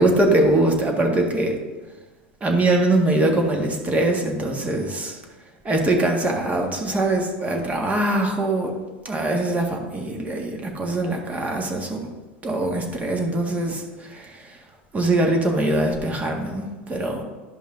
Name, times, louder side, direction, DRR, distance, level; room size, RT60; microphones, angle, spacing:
voice 1, 0.0-1.6 2.4-5.2 5.6-8.7 9.0-12.1 12.4-14.6 14.9-17.2, right 2 dB, 20° right, 2 dB, 1.6 m, -22 dB
11.5 x 5.2 x 3.8 m, 1.2 s
hypercardioid pair, 90°, 6 cm